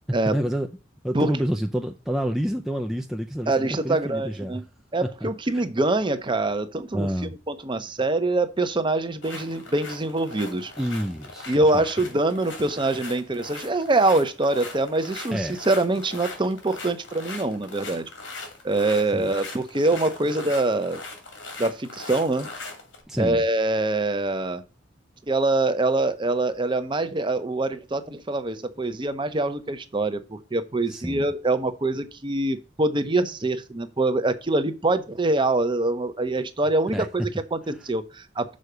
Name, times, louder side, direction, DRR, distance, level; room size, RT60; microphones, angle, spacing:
voice 1, 0.3-0.7 1.0-4.6 5.2-5.3 5.5-5.6 6.9-7.4 10.8-11.8 15.3-15.6 19.1-19.3 23.1-23.4 30.9-31.3 36.9-37.1, equal, ahead, 0.4 m, -28 dB
voice 2, 3.5-4.6 4.9-7.1 7.5-10.7 11.5-18.1 18.6-21.0 21.6-22.5 23.2-24.6 25.3-38.6, right 2 dB, 25° right, 0.8 m, -24 dB
sound 1, 9.2-23.0, left 3 dB, 85° left, 2.6 m, -40 dB
6.4 x 4.8 x 6.7 m
head